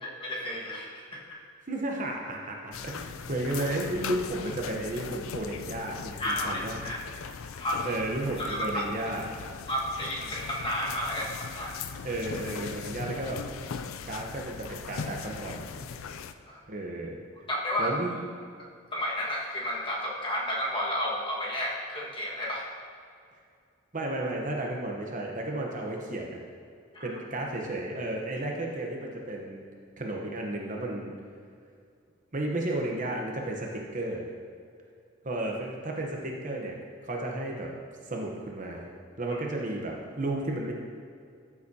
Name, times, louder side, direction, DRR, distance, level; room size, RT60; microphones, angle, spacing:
voice 1, 0.0-1.2 6.2-7.0 7.6-7.9 8.4-8.8 9.7-11.7 16.1-16.2 16.5-16.6 17.5-17.9 18.9-22.7 26.9-27.1, equal, 25° left, -4 dB, 1.7 m, -32 dB
voice 2, 1.7-6.7 7.8-9.3 12.0-13.4 14.0-15.7 16.7-17.2 17.8-18.2 23.9-26.4 27.0-29.6 30.0-31.1 32.3-34.3 35.2-36.8 37.1-37.7 38.1-38.9 39.2-40.7, right 1 dB, 40° right, 0 dB, 1.0 m, -33 dB
sound 1, 2.7-16.3, left 6 dB, 80° left, 0.4 m, -39 dB
13.0 x 7.2 x 2.8 m, 2.3 s
head